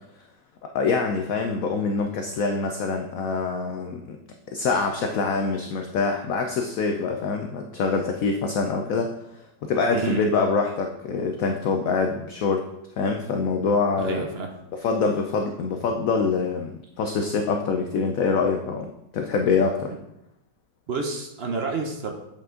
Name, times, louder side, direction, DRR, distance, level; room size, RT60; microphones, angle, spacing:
voice 1, 0.6-4.2 4.5-12.6 13.0-14.3 14.7-19.9, left 4 dB, 65° left, 4 dB, 0.8 m, -25 dB
voice 2, 9.9-10.3 14.0-14.5 20.9-22.1, right 4 dB, 60° right, 3 dB, 0.6 m, -29 dB
8.0 x 5.1 x 3.7 m, 0.85 s
omnidirectional pair, 1.9 m